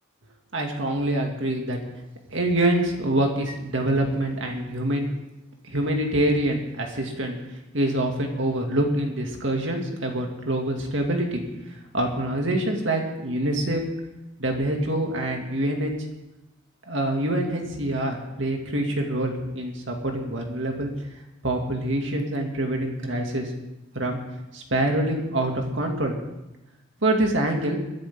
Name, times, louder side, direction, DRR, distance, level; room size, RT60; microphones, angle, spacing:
voice 1, 0.5-1.8 2.3-5.1 5.6-7.4 7.7-11.4 11.9-13.8 14.4-15.9 16.9-20.9 21.4-23.5 23.9-24.2 24.5-26.1 27.0-27.8, right 1 dB, 65° right, 2 dB, 2.4 m, -25 dB
23.5 x 10.5 x 3.8 m, 0.98 s
head